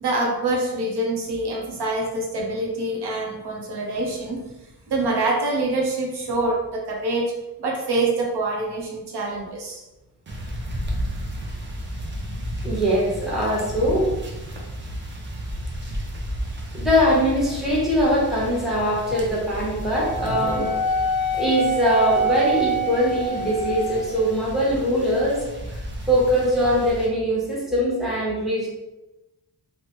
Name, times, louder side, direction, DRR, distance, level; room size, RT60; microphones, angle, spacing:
voice 1, 0.0-4.4 4.9-7.3 7.6-9.8 20.3-20.7, right 2 dB, 75° right, -1 dB, 0.7 m, -25 dB
sound 1, 10.3-27.1, equal, 30° right, 0.4 m, -33 dB
voice 2, 12.6-14.1 16.7-20.7 21.3-25.8 26.1-28.7, equal, ahead, -6 dB, 0.8 m, -22 dB
Wind instrument woodwind instrument, 20.0-24.2, right 2 dB, 65° left, 0.5 m, -25 dB
2.9 x 2.1 x 2.9 m, 1.0 s
wide cardioid pair, 150°, 40 cm